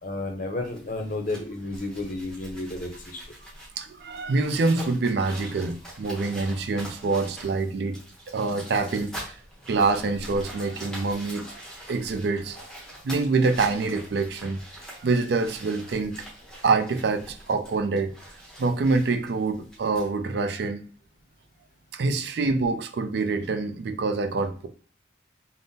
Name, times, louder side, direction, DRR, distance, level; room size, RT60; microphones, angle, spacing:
voice 1, 0.0-3.2, left 2 dB, 45° left, 3 dB, 0.6 m, -32 dB
sound 1, 0.6-20.1, equal, 5° left, 0.8 m, -44 dB
voice 2, 3.8-8.0 8.3-9.3 9.7-11.6 11.9-12.8 13.0-14.6 14.9-16.3 16.6-18.1 18.6-20.8 21.9-24.7, right 3 dB, 60° right, 8 dB, 0.4 m, -26 dB
3.5 x 2.0 x 2.7 m, 0.44 s
head